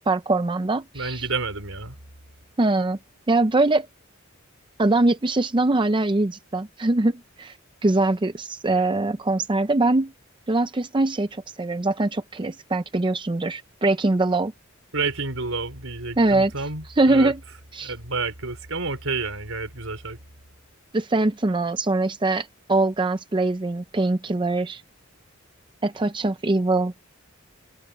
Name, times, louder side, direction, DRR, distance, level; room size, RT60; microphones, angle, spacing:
voice 1, 0.1-1.2 2.6-3.0 3.3-3.9 4.8-7.5 7.8-10.1 10.5-14.5 16.2-16.5 17.0-17.4 17.7-17.9 20.9-24.8 25.8-26.9, right 2 dB, 25° right, 0.6 m, -22 dB
voice 2, 0.9-2.0 14.9-17.3 17.8-20.2, right 3 dB, 75° right, 5.1 m, -29 dB
head